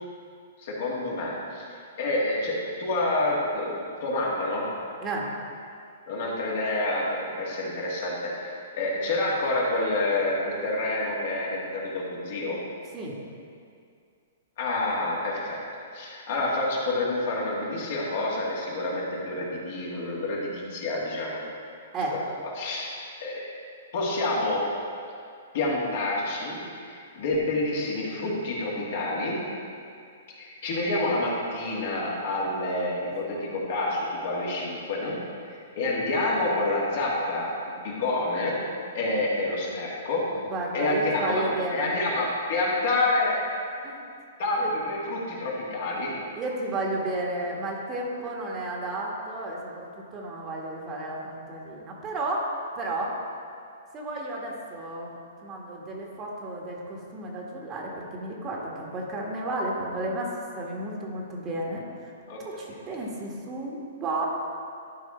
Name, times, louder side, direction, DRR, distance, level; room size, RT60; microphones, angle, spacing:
voice 1, 0.6-3.7 4.0-4.7 6.1-12.6 14.6-15.6 15.9-21.4 22.1-22.2 22.6-23.5 23.9-24.6 25.5-29.4 30.4-35.2 35.4-37.5 37.8-38.5 38.9-40.2 40.7-41.4 41.7-43.4 44.4-46.1 62.3-62.4, left 2 dB, 60° left, -5 dB, 2.3 m, -28 dB
voice 2, 5.0-5.3 12.9-13.1 21.9-22.2 40.5-42.0 43.8-44.0 44.5-44.7 46.4-53.2 53.9-62.1 62.4-64.3, right 2 dB, 25° right, -2 dB, 1.5 m, -32 dB
12.0 x 4.8 x 4.4 m, 2.3 s
hypercardioid pair, 125°, 0 cm